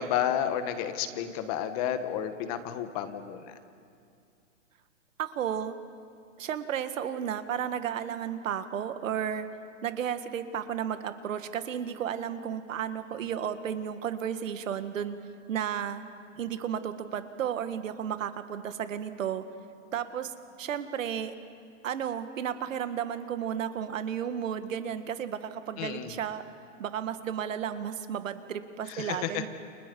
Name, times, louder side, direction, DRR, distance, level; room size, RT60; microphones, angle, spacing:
voice 1, 0.0-3.5 25.8-26.2 28.9-29.4, left 9 dB, 30° left, 9 dB, 1.2 m, -31 dB
voice 2, 5.2-5.8 6.4-9.5 9.8-15.2 15.5-16.0 16.4-19.4 19.9-21.3 21.8-26.4 26.8-29.5, right 9 dB, 80° right, 10 dB, 1.9 m, -33 dB
29.5 x 29.5 x 5.4 m, 2.4 s
hypercardioid pair, 165°, 38 cm